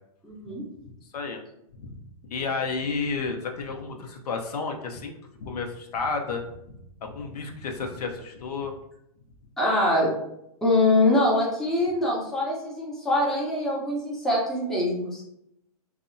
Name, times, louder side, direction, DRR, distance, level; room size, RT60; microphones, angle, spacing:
voice 1, 0.2-0.6 9.6-10.1 10.6-15.2, left 1 dB, ahead, -5 dB, 0.5 m, -24 dB
voice 2, 2.3-5.1 5.4-6.5 7.0-8.8, left 4 dB, 85° left, 3 dB, 0.5 m, -31 dB
2.7 x 2.0 x 2.5 m, 0.77 s
hypercardioid pair, 140°, 19 cm